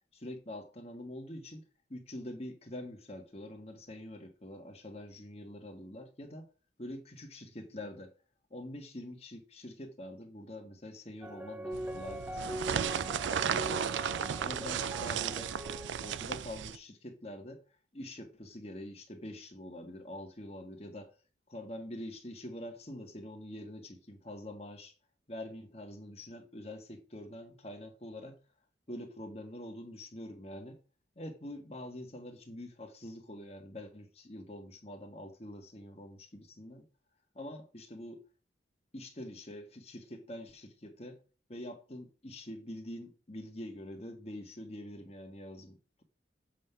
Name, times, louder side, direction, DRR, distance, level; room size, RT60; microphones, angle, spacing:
voice 1, 0.1-1.6 1.9-6.5 6.8-8.1 8.5-15.5 16.0-17.6 17.9-21.1 21.5-24.9 25.3-28.4 28.9-30.8 31.1-36.9 37.3-38.2 38.9-41.2 41.5-46.0, left 1 dB, 35° left, 1.4 m, -45 dB
sound 1, 11.2-16.3, right 1 dB, 10° right, 0.5 m, -42 dB
sound 2, 11.7-16.8, right 8 dB, 80° right, 0.4 m, -34 dB
7.5 x 3.7 x 5.7 m
head